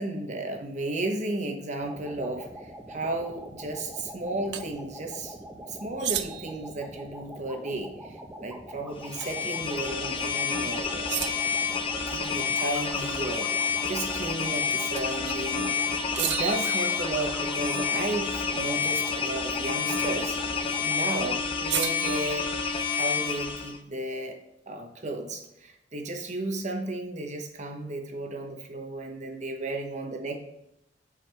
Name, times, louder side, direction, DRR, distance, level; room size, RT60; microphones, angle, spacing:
voice 1, 0.0-5.4 5.7-11.4 12.1-15.8 16.1-20.4 20.8-22.5 22.9-24.4 24.7-30.4, right 2 dB, 40° right, 4 dB, 0.9 m, -34 dB
sound 1, 1.8-21.0, equal, 10° right, 0.8 m, -43 dB
sound 2, 4.5-4.7 6.0-6.7 9.2-9.5 9.8-9.9 11.1-11.7 15.0-15.5 16.2-17.5 19.9-20.2 21.7-23.1, right 12 dB, 70° right, 0.4 m, -34 dB
sound 3, 9.0-23.8, left 5 dB, 30° left, 0.6 m, -29 dB
7.7 x 4.8 x 3.4 m, 0.82 s
head